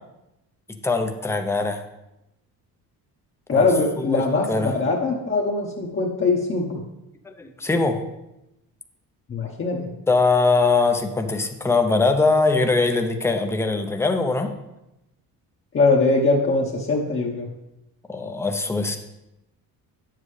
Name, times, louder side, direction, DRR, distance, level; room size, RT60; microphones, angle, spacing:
voice 1, 0.8-1.8 3.5-3.7 4.0-4.2 4.5-4.7 7.2-8.0 10.1-14.5 18.1-19.0, left 3 dB, 5° left, 5 dB, 0.6 m, -21 dB
voice 2, 3.5-6.8 9.3-9.9 15.7-17.5, left 3 dB, 35° left, -3 dB, 1.0 m, -21 dB
9.0 x 7.6 x 3.2 m, 0.89 s
cardioid pair, 125°, 37 cm